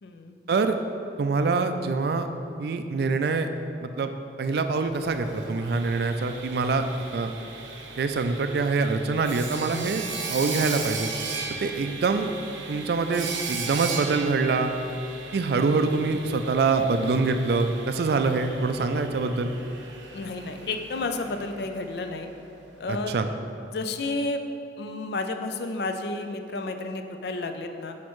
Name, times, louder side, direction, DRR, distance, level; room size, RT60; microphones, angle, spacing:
voice 1, 0.0-0.4 20.1-22.3 22.8-23.1 23.4-24.4 24.8-28.0, left 2 dB, 60° left, 7 dB, 0.4 m, -31 dB
voice 2, 1.2-2.3 2.6-3.5 3.8-4.1 4.4-6.9 7.1-7.3 8.0-10.0 10.3-11.1 11.6-12.3 12.7-14.7 15.3-19.5 22.9-23.3, right 4 dB, 55° right, 8 dB, 0.3 m, -25 dB
Sawing, 4.9-22.7, right 4 dB, 85° right, 0.7 m, -37 dB
6.2 x 5.7 x 3.1 m, 2.6 s
head